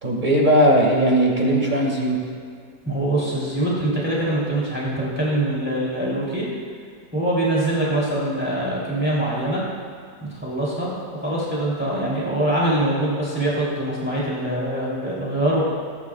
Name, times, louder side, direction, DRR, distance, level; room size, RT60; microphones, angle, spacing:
voice 1, 0.0-2.2, right 1 dB, 30° right, -2 dB, 2.2 m, -18 dB
voice 2, 2.8-6.5 7.1-9.6 10.2-15.6, right 1 dB, 5° right, -7 dB, 3.2 m, -23 dB
20.5 x 11.0 x 2.5 m, 2.2 s
omnidirectional pair, 1.7 m